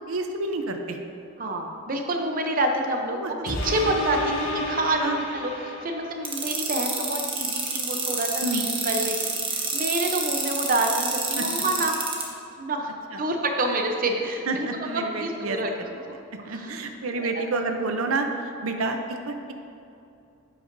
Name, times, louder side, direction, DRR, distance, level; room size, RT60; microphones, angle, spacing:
voice 1, 0.1-1.0 3.2-3.3 5.0-5.2 8.4-8.6 11.4-11.5 14.5-15.6 16.4-18.3 18.6-19.5, right 3 dB, 85° right, 5 dB, 0.6 m, -29 dB
voice 2, 1.4-9.2 9.5-12.1 12.6-15.7 16.4-16.8 17.1-17.5, right 1 dB, 40° right, 3 dB, 0.6 m, -28 dB
sound 1, 3.5-6.4 6.9-7.0, left 1 dB, 75° left, 1.3 m, -30 dB
sound 2, 6.2-12.2, right 4 dB, 25° right, 1.0 m, -28 dB
10.5 x 7.9 x 2.6 m, 2.6 s
head